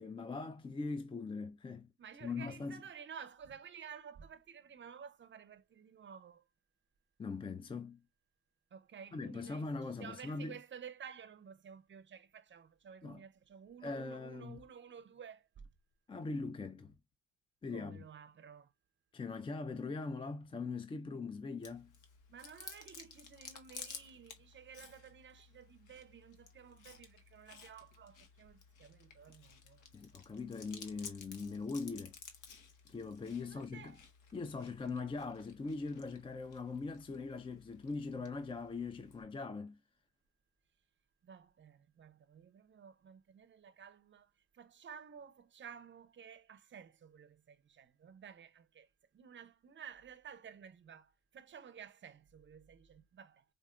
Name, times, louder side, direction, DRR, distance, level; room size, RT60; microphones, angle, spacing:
voice 1, 0.0-1.9 2.2-2.8 7.2-8.0 9.1-10.6 13.0-13.2 13.8-14.6 16.1-16.9 17.6-18.0 19.1-21.9 29.9-32.1 32.9-34.0 34.3-39.8, left 4 dB, 20° left, 0.3 m, -41 dB
voice 2, 2.0-6.4 8.7-9.7 10.0-15.6 17.7-18.7 22.3-30.2 33.2-34.0 41.2-53.4, right 7 dB, 40° right, 0.6 m, -53 dB
Chewing mastication, 21.6-39.2, left 6 dB, 75° left, 1.0 m, -55 dB
4.9 x 2.5 x 2.4 m
cardioid pair, 90°, 30 cm